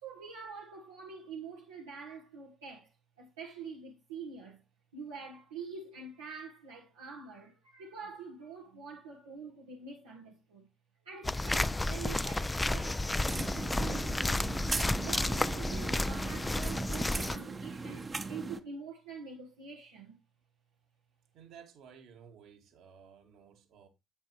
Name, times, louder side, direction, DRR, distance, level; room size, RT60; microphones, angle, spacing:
voice 1, 0.0-2.9 3.2-4.6 4.9-10.7 11.0-14.5 15.0-20.2, right 5 dB, 80° right, 1.2 m, -46 dB
sound 1, 11.2-17.4, left 2 dB, 15° left, 0.4 m, -32 dB
sound 2, 13.3-18.6, right 4 dB, 30° right, 1.0 m, -39 dB
voice 2, 21.3-23.9, right 7 dB, 60° right, 1.9 m, -55 dB
9.6 x 8.1 x 3.0 m
figure-of-eight pair, 50°, 0 cm